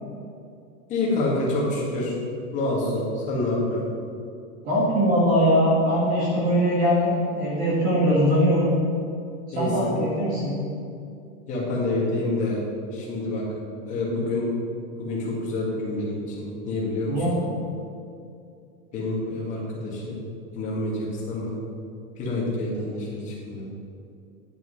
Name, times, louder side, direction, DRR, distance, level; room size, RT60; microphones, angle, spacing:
voice 1, 0.9-2.2 2.5-3.8 9.5-10.0 11.5-12.6 12.9-13.5 13.9-14.5 15.0-17.2 18.9-20.2 20.5-21.6 22.2-23.6, left 2 dB, 20° left, -4 dB, 2.0 m, -27 dB
voice 2, 4.6-8.7 9.5-10.5 17.1-17.4, equal, 20° right, -5 dB, 1.6 m, -21 dB
10.5 x 6.6 x 5.6 m, 2.5 s
supercardioid pair, 175°, 41 cm